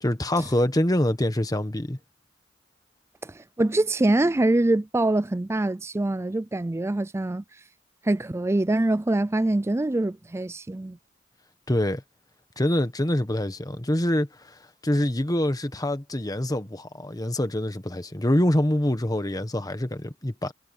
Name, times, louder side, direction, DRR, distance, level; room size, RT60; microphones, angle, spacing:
voice 1, 0.0-2.0 11.7-12.0 12.6-14.5 14.8-20.5, left 1 dB, 20° left, 1.3 m, -25 dB
voice 2, 3.2-7.4 8.0-11.0, right 2 dB, 15° right, 0.4 m, -24 dB
head